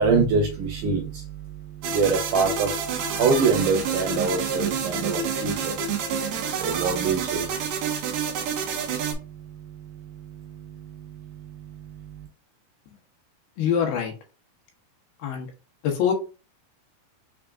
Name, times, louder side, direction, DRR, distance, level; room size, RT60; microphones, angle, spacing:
voice 1, 0.0-12.3, right 4 dB, 70° right, 2 dB, 2.1 m, -27 dB
sound 1, 1.8-9.1, right 6 dB, 90° right, 1.5 m, -28 dB
voice 2, 13.6-14.1 15.2-15.5 15.8-16.1, left 8 dB, 80° left, 1 dB, 2.8 m, -24 dB
6.4 x 3.5 x 2.4 m, 0.32 s
omnidirectional pair, 4.4 m